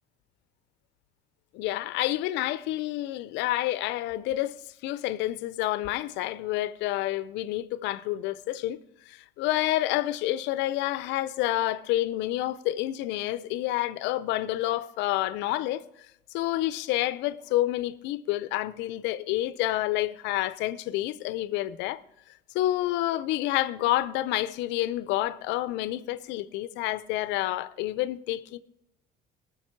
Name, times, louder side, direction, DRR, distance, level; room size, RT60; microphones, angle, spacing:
voice 1, 1.5-4.6 4.8-8.8 9.1-15.8 16.3-22.0 22.5-28.6, left 15 dB, 70° left, 0.6 m, -29 dB
18.5 x 6.6 x 4.5 m
cardioid pair, 165°, 19 cm